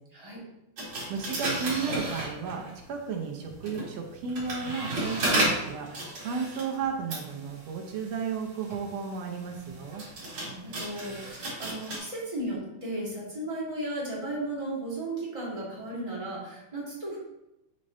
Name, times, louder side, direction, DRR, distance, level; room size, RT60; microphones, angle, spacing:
voice 1, 0.1-0.4 10.4-17.2, right 1 dB, 15° right, -6 dB, 1.4 m, -35 dB
sound 1, 0.8-2.8 3.5-12.0, right 1 dB, 45° right, 2.7 m, -33 dB
voice 2, 1.1-10.0, right 5 dB, 70° right, 1 dB, 1.9 m, -33 dB
6.8 x 6.5 x 2.7 m, 0.91 s
omnidirectional pair, 3.3 m